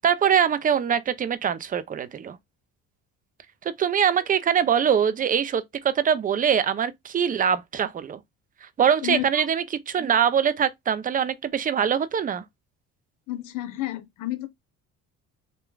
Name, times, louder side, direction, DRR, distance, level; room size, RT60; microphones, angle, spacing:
voice 1, 0.0-2.4 3.6-8.2 8.8-12.4, right 8 dB, 25° right, 0.4 m, -23 dB
voice 2, 9.0-9.4 13.3-14.5, left 16 dB, 70° left, 0.8 m, -31 dB
3.1 x 2.2 x 2.2 m
cardioid pair, 100°, 32 cm